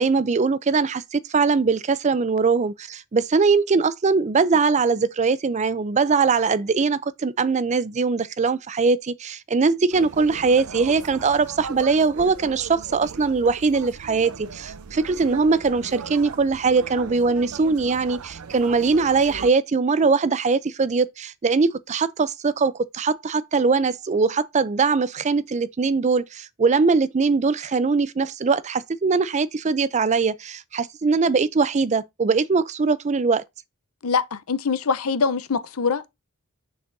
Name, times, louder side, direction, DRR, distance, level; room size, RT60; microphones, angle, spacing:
voice 1, 0.0-33.4, right 4 dB, 30° right, 0.4 m, -21 dB
sound 1, 9.9-19.5, right 5 dB, 80° right, 0.6 m, -38 dB
voice 2, 34.0-36.1, left 5 dB, 80° left, 0.7 m, -23 dB
6.6 x 6.5 x 2.6 m
head